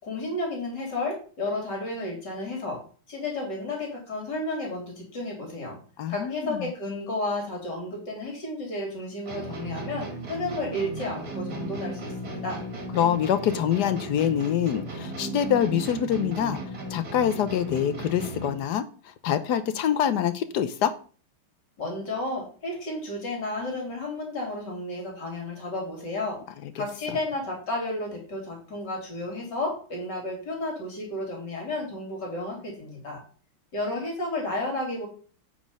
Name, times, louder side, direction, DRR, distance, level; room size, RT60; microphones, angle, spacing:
voice 1, 0.0-2.8 3.1-5.8 6.1-12.6 21.8-26.4 26.8-33.2 33.7-35.1, left 2 dB, 50° left, 0 dB, 3.8 m, -32 dB
voice 2, 6.0-6.7 12.9-16.6 16.9-18.8 19.2-20.9 26.8-26.9, left 9 dB, 65° left, 12 dB, 1.0 m, -25 dB
sound 1, 9.3-18.7, right 2 dB, 45° right, 2.4 m, -36 dB
8.6 x 5.3 x 5.3 m, 0.41 s
omnidirectional pair, 2.4 m